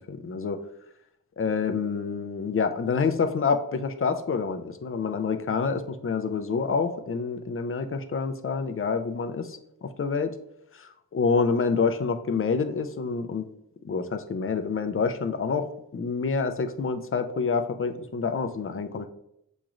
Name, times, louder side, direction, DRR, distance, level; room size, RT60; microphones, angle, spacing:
voice 1, 0.1-0.6 1.4-10.3 10.7-13.5 13.8-19.1, left 5 dB, 40° left, 8 dB, 0.4 m, -27 dB
7.1 x 3.0 x 2.4 m, 0.78 s
wide cardioid pair, 75°, 36 cm